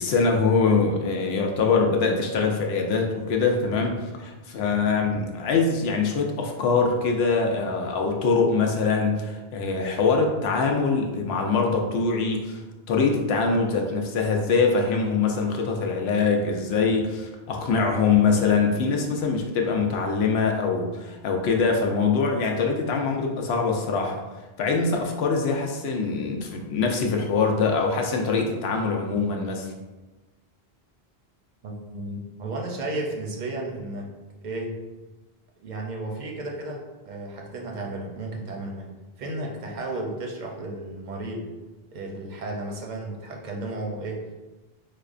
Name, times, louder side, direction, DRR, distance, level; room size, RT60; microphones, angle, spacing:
voice 1, 0.0-12.6 12.9-24.2 24.6-29.7, left 4 dB, 80° left, 2 dB, 0.8 m, -23 dB
voice 2, 31.6-34.1 34.4-34.8 35.6-38.9 39.2-41.5 41.9-44.3, right 2 dB, 55° right, 0 dB, 0.7 m, -33 dB
4.9 x 2.1 x 2.4 m, 1.2 s
omnidirectional pair, 1.0 m